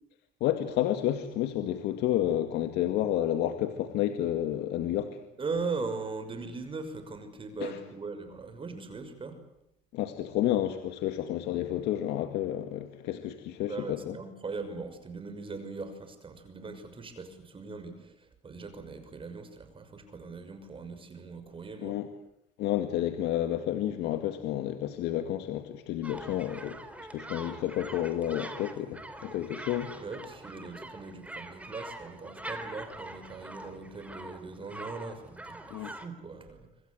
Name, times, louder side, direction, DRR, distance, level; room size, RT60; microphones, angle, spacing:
voice 1, 0.4-5.2 7.6-7.8 9.9-14.2 21.8-22.1 22.6-26.8 27.1-29.9 35.7-35.9, left 12 dB, 85° left, 8 dB, 2.1 m, -30 dB
voice 2, 5.4-9.4 13.7-22.0 30.0-36.7, right 4 dB, 30° right, 9 dB, 6.0 m, -40 dB
sound 1, 26.0-36.1, right 1 dB, 10° right, 3.8 m, -44 dB
26.5 x 25.5 x 8.0 m, 0.80 s
cardioid pair, 110°, 17 cm